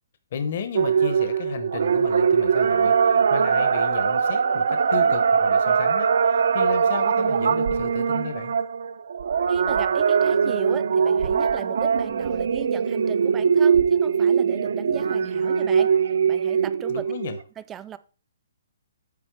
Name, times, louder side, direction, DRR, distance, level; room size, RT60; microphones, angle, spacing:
voice 1, 0.3-8.5 16.9-17.4, left 6 dB, 50° left, 0.9 m, -34 dB
sound 1, 0.7-17.4, right 6 dB, 70° right, 0.5 m, -21 dB
voice 2, 9.5-15.9 16.3-17.1 17.6-18.0, right 10 dB, 15° right, 0.4 m, -38 dB
8.5 x 4.5 x 4.7 m
hypercardioid pair, 160°, 0 cm